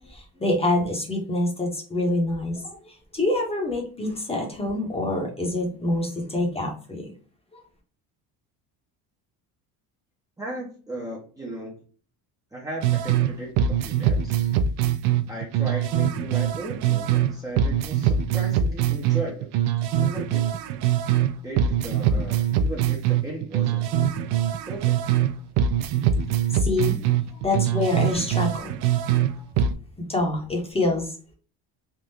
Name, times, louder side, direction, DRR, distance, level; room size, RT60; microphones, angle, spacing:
voice 1, 0.0-7.1 7.5-7.6 26.5-27.1 27.3-28.7 30.0-31.3, left 2 dB, 15° left, 1 dB, 0.9 m, -26 dB
voice 2, 10.4-11.8 12.5-14.5 15.3-19.5 19.9-20.5 21.4-24.0 24.7-25.0, right 2 dB, 10° right, -4 dB, 0.7 m, -36 dB
sound 1, 12.8-13.3 13.6-17.3 17.6-21.3 21.6-25.3 25.6-29.3 29.6-29.7, right 9 dB, 85° right, 0.5 m, -23 dB
3.6 x 2.4 x 2.7 m, 0.40 s
cardioid pair, 135°, 40 cm